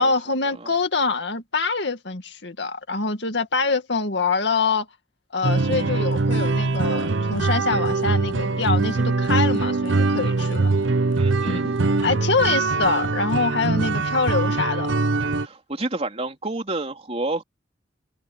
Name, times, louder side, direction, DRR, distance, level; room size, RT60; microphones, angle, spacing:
voice 1, 0.0-4.9 5.3-10.7 11.5-11.7 12.0-15.0, left 4 dB, 65° left, 2.3 m, -25 dB
sound 1, 5.4-15.5, right 3 dB, 90° right, 0.8 m, -22 dB
voice 2, 11.2-11.7 15.4-17.4, right 2 dB, 35° right, 3.6 m, -29 dB
head